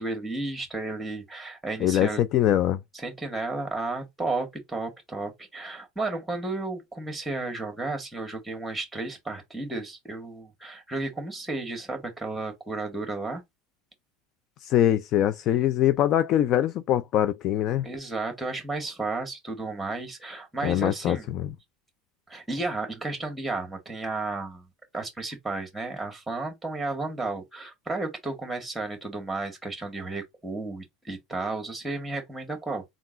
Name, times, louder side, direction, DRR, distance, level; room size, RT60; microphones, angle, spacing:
voice 1, 0.0-2.2 2.9-13.4 17.8-21.3 22.3-24.7 24.9-32.8, right 2 dB, 5° right, 1.7 m, -33 dB
voice 2, 1.8-2.8 14.6-17.8 20.6-21.5, left 11 dB, 50° left, 0.4 m, -23 dB
3.7 x 2.3 x 3.8 m
supercardioid pair, 110°, 0 cm